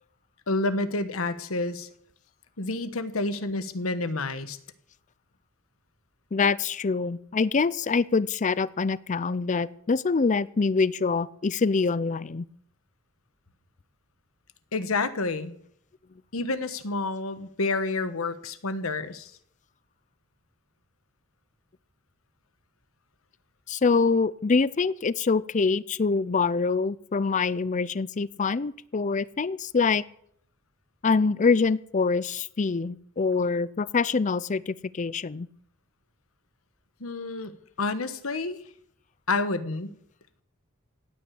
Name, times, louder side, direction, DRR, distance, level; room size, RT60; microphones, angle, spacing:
voice 1, 0.5-1.9 2.6-4.6 14.7-15.5 16.3-19.3 37.0-38.6 39.3-40.0, left 3 dB, 85° left, 12 dB, 1.3 m, -29 dB
voice 2, 6.3-12.5 23.7-30.0 31.0-35.5, left 4 dB, 35° left, 20 dB, 0.5 m, -25 dB
17.0 x 9.1 x 8.7 m, 0.70 s
head